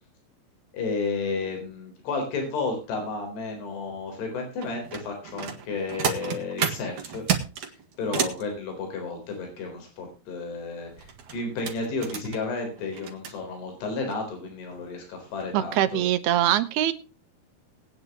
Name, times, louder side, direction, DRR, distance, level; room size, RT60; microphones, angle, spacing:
voice 1, 0.7-7.2 7.6-16.0, left 3 dB, 85° left, 3 dB, 6.0 m, -32 dB
sound 1, 4.6-8.4 10.9-13.3 14.1-14.2 14.6-14.8 15.3-15.5 15.9-16.0, right 8 dB, 55° right, 2.9 m, -31 dB
voice 2, 15.5-16.9, right 12 dB, 75° right, 12 dB, 3.0 m, -23 dB
20.0 x 9.7 x 3.0 m, 0.31 s
omnidirectional pair, 4.7 m